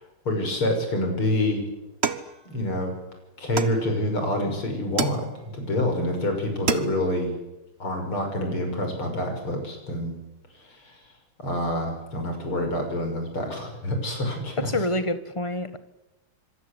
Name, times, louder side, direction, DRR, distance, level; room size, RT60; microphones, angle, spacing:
voice 1, 0.2-1.6 2.4-2.9 3.4-5.2 5.5-7.3 7.8-10.1 10.8-10.9 11.4-14.7, left 1 dB, 80° left, 4 dB, 6.9 m, -27 dB
sound 1, 2.0-3.0 3.6-4.3 5.0-5.7 6.2-6.3 6.5-7.2, right 5 dB, 35° right, 1.3 m, -30 dB
voice 2, 14.6-15.8, left 1 dB, 15° left, 12 dB, 1.3 m, -27 dB
26.5 x 23.0 x 8.2 m, 0.98 s
omnidirectional pair, 2.3 m